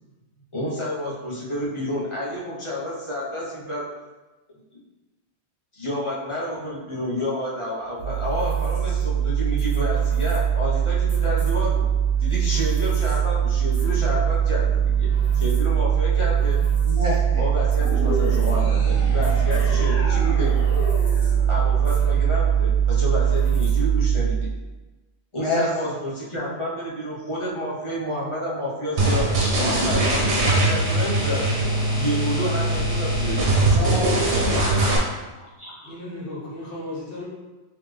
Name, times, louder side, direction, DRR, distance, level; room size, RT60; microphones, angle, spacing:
voice 1, 0.5-3.9 4.7-4.8 5.7-11.9 12.2-16.6 17.4-20.5 21.5-24.5 25.3-33.8, equal, 30° left, -6 dB, 1.0 m, -30 dB
sound 1, 8.0-24.5, right 8 dB, 60° right, 1.6 m, -21 dB
voice 2, 16.8-17.4 25.4-25.7 33.7-35.0 35.6-35.9, left 1 dB, 30° right, -7 dB, 0.8 m, -29 dB
sound 2, 17.8-22.3, left 1 dB, 85° left, 1.1 m, -32 dB
sound 3, 29.0-35.0, right 2 dB, 85° right, 1.2 m, -21 dB
voice 3, 35.8-37.3, left 1 dB, 55° left, -6 dB, 1.3 m, -35 dB
4.0 x 3.1 x 3.3 m, 1.2 s
omnidirectional pair, 1.1 m